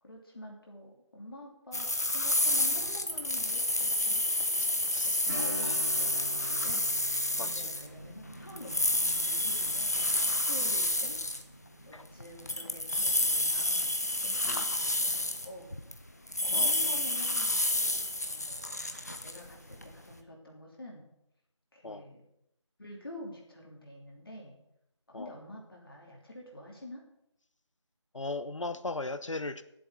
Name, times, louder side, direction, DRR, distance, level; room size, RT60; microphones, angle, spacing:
voice 1, 0.0-4.2 5.0-6.9 7.3-8.8 9.1-11.2 11.8-13.9 14.2-15.8 16.4-17.7 18.2-21.1 21.7-22.2 22.8-24.6 25.1-27.0, left 1 dB, 50° left, -1 dB, 3.3 m, -47 dB
sound 1, 1.7-11.4 12.2-16.0 16.3-20.1, left 1 dB, 35° left, 0.7 m, -30 dB
voice 2, 4.6-5.3 5.6-5.7 7.4-7.7 11.9-12.1 12.4-12.6 12.9-13.2 14.5-14.7 16.5-16.7 21.8-22.1 25.1-25.3 28.1-29.6, left 2 dB, 80° left, 12 dB, 0.9 m, -39 dB
Strum, 5.3-14.5 14.8-14.9 17.4-17.6 18.1-18.2, right 1 dB, 35° right, 0.9 m, -47 dB
18.5 x 7.7 x 3.9 m, 0.84 s
figure-of-eight pair, 175°, 16 cm